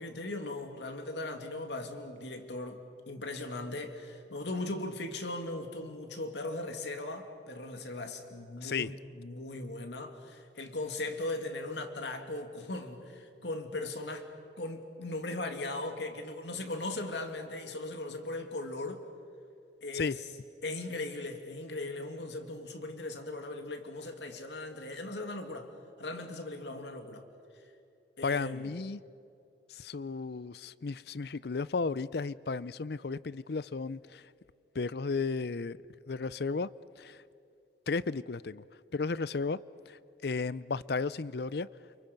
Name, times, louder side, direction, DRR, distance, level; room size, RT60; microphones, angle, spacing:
voice 1, 0.0-14.3 14.6-19.0 19.8-20.2 20.6-25.7 26.0-27.2 28.2-28.7, left 2 dB, 80° left, 2.4 m, -38 dB
voice 2, 28.2-29.0 29.7-34.3 34.7-35.8 36.1-36.7 37.0-37.2 37.9-38.6 38.9-41.7, left 4 dB, 60° left, 0.5 m, -34 dB
29.5 x 28.5 x 5.3 m
head